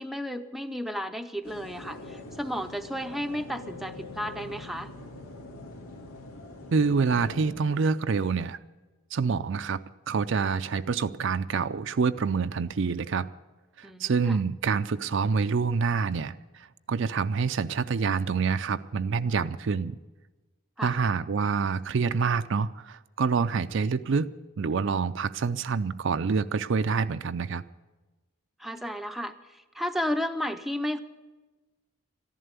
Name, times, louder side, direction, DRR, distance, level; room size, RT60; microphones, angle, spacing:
voice 1, 0.0-4.9 13.8-14.4 20.8-21.0 28.6-31.0, equal, ahead, 6 dB, 0.6 m, -33 dB
sound 1, 1.4-7.5, left 2 dB, 90° left, 2.6 m, -43 dB
voice 2, 6.7-8.6 9.1-9.8 10.1-13.3 13.8-20.0 20.8-24.3 24.6-27.6, right 5 dB, 55° right, 12 dB, 0.4 m, -27 dB
14.0 x 11.0 x 8.1 m, 1.2 s
head